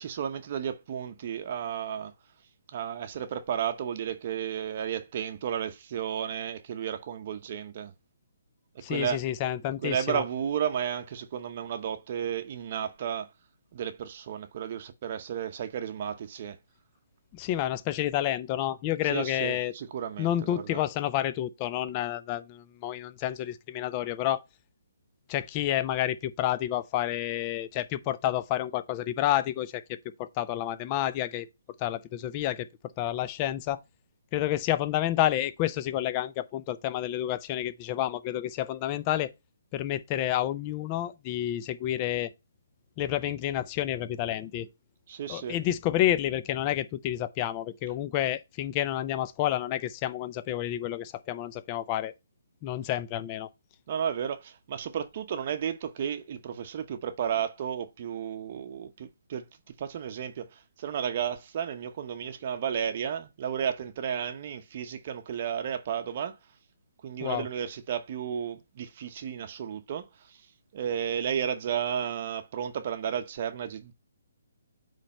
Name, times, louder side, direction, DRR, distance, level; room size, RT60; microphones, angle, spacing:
voice 1, 0.0-2.1 2.7-7.9 8.9-9.2 9.8-13.3 13.7-16.6 19.1-20.8 45.1-45.5 53.9-59.4 59.8-66.4 67.0-70.4 70.7-73.9, right 8 dB, 45° right, 0.7 m, -33 dB
voice 2, 8.8-10.2 17.3-19.7 20.2-24.4 25.3-29.8 30.2-31.5 31.8-32.7 33.0-33.8 34.3-39.3 39.7-42.3 43.0-44.7 45.3-52.1 52.6-53.5 67.2-67.5, left 12 dB, 25° left, 0.5 m, -29 dB
8.4 x 3.3 x 5.2 m
hypercardioid pair, 155°, 0 cm